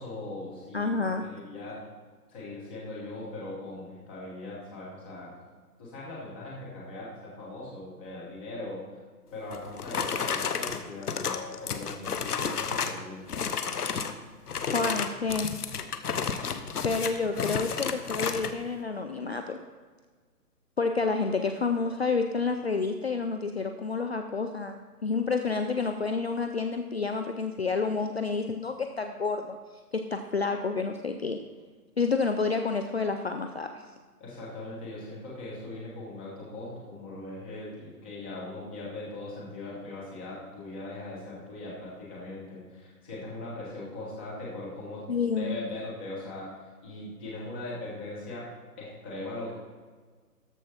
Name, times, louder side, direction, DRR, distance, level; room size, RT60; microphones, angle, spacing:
voice 1, 0.0-1.8 2.3-5.3 5.8-8.8 9.3-13.3 34.2-45.0 45.4-46.5 46.8-48.4 48.8-49.5, left 2 dB, 5° left, -6 dB, 0.9 m, -40 dB
voice 2, 0.7-1.3 14.7-15.5 16.8-19.6 20.8-29.6 29.9-31.4 32.0-33.8 45.1-45.6, left 4 dB, 45° left, 6 dB, 0.5 m, -29 dB
sound 1, 9.5-13.0 13.3-14.2 14.5-18.5, left 6 dB, 75° left, 1.0 m, -31 dB
13.5 x 4.5 x 5.7 m, 1.5 s
hypercardioid pair, 165°, 47 cm